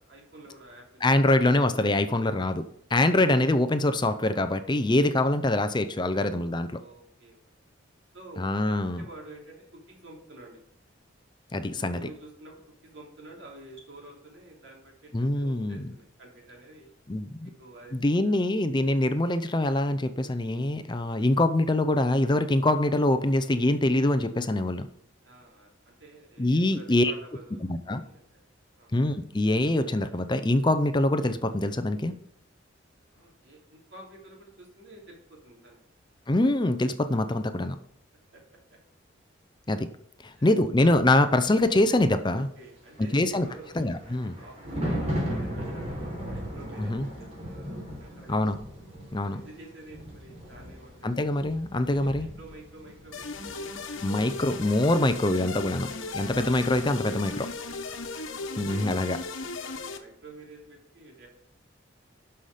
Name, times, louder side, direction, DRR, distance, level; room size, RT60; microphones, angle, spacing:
voice 1, 0.0-1.3 4.7-4.9 6.7-7.8 8.1-10.6 11.7-16.9 17.4-18.4 21.1-21.3 25.2-28.4 28.8-28.9 33.1-35.8 38.3-38.4 38.7-38.8 40.2-40.5 42.2-43.7 44.3-48.5 49.2-51.2 51.9-54.6 58.1-58.3 58.7-59.3 59.6-61.3, right 2 dB, 65° right, -1 dB, 3.3 m, -50 dB
voice 2, 1.0-6.8 8.4-9.0 11.5-12.0 15.1-15.9 17.1-17.5 17.9-24.9 26.4-27.1 27.6-28.0 28.9-32.2 36.3-37.8 39.7-39.9 40.2-42.5 43.1-43.5 43.8-44.4 46.8-47.1 48.3-48.6 49.1-49.4 51.0-52.3 54.0-57.5 58.6-59.2, left 1 dB, 25° left, 10 dB, 0.5 m, -24 dB
Thunder, 42.9-57.4 57.7-58.0, equal, 35° right, 3.6 m, -38 dB
sound 1, 53.1-60.0, left 3 dB, 90° left, 1.2 m, -37 dB
12.0 x 5.7 x 5.0 m, 0.75 s
head